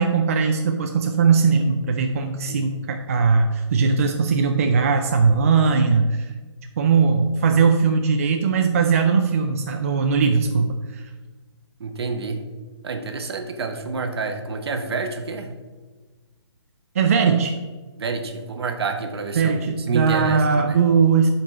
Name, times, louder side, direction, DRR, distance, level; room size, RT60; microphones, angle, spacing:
voice 1, 0.0-6.3 6.8-11.0 17.0-17.6 19.4-21.3, right 5 dB, 30° right, 5 dB, 0.4 m, -19 dB
voice 2, 11.8-12.4 12.8-15.5 18.0-19.6 19.9-20.4 20.7-20.8, right 4 dB, 60° right, 6 dB, 1.0 m, -28 dB
7.2 x 4.2 x 5.3 m, 1.3 s
hypercardioid pair, 160°, 15 cm